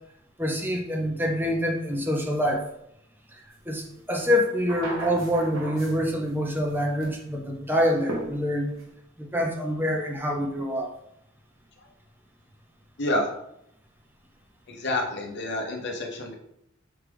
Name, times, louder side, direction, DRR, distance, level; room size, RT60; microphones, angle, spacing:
voice 1, 0.4-2.7 3.7-8.7 9.2-10.9, equal, 10° right, 1 dB, 0.6 m, -26 dB
sound 1, 3.8-3.9 4.2-6.3 6.6-7.2 8.1-8.8, right 1 dB, 80° right, 1.1 m, -37 dB
voice 2, 13.0-13.3 14.7-16.3, left 1 dB, 55° left, 2 dB, 0.7 m, -28 dB
5.9 x 2.4 x 3.4 m, 0.77 s
head